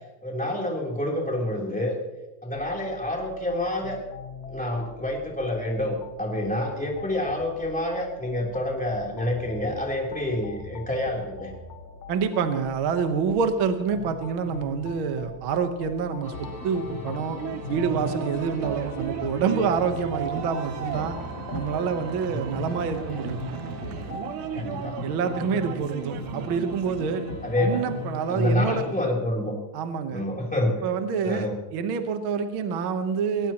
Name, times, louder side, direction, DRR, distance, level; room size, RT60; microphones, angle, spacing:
voice 1, 0.2-2.0 2.4-4.0 4.5-11.5 22.5-22.7 24.5-25.0 27.4-27.8 28.3-29.5 30.1-30.8 31.2-31.5, left 1 dB, 5° left, -2 dB, 3.1 m, -27 dB
sound 1, 2.5-21.6, left 3 dB, 60° left, 2.3 m, -43 dB
voice 2, 12.1-17.4 17.7-21.2 21.5-23.4 25.0-27.3 27.6-28.8 29.7-30.2 30.8-33.5, right 6 dB, 55° right, 7 dB, 1.5 m, -27 dB
sound 2, 16.2-29.0, left 2 dB, 40° left, 4.1 m, -37 dB
sound 3, 17.4-27.0, right 12 dB, 80° right, 2.0 m, -36 dB
21.0 x 18.0 x 3.0 m, 1.0 s
omnidirectional pair, 3.5 m